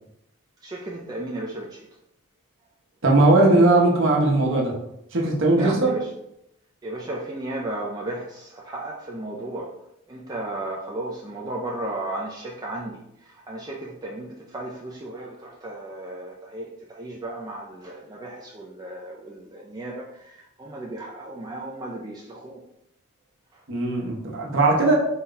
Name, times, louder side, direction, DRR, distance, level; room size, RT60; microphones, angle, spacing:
voice 1, 0.6-1.9 5.6-6.1 6.8-9.7 10.1-22.6, right 2 dB, 20° right, -3 dB, 0.3 m, -34 dB
voice 2, 3.0-4.7 5.1-5.9 23.7-24.9, right 2 dB, 55° right, -2 dB, 0.9 m, -19 dB
4.1 x 2.2 x 3.8 m, 0.81 s
head